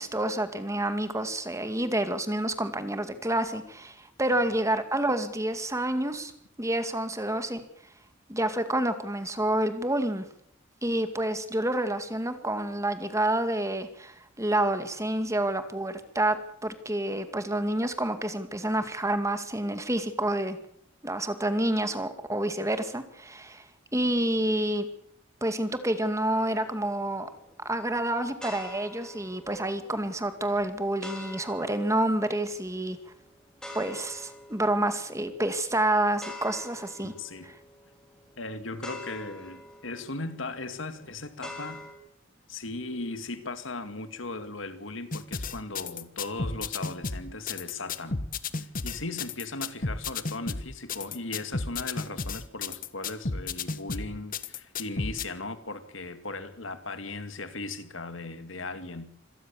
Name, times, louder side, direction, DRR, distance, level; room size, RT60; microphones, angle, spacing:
voice 1, 0.0-6.3 6.6-7.6 8.3-10.3 10.8-20.6 21.0-23.6 23.9-24.9 25.4-27.3 27.6-33.0 33.7-37.1 37.4-37.5, right 1 dB, 15° right, 9 dB, 2.1 m, -28 dB
sound 1, 26.3-41.9, left 1 dB, 5° left, 4.8 m, -47 dB
voice 2, 37.0-37.5 38.4-41.8 42.5-48.2 48.6-59.1, left 3 dB, 80° left, 10 dB, 2.3 m, -37 dB
sound 2, 45.1-55.2, left 4 dB, 45° left, 1.2 m, -33 dB
26.0 x 18.0 x 7.1 m, 0.67 s
head